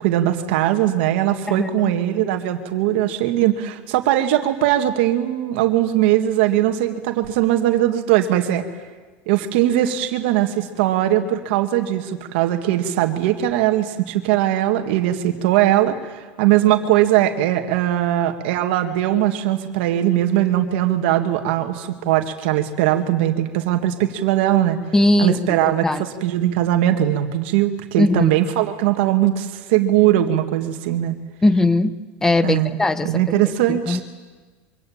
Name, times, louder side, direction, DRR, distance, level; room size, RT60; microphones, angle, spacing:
voice 1, 0.0-8.6 9.3-24.8 25.2-31.1 32.4-32.7 33.1-34.0, right 13 dB, 70° right, 5 dB, 1.9 m, -20 dB
voice 2, 1.5-1.9 24.9-26.0 28.0-28.3 31.4-32.0 32.2-33.2 33.7-34.0, left 2 dB, 10° left, 13 dB, 1.0 m, -19 dB
25.0 x 25.0 x 8.7 m, 1.4 s
supercardioid pair, 160°, 6 cm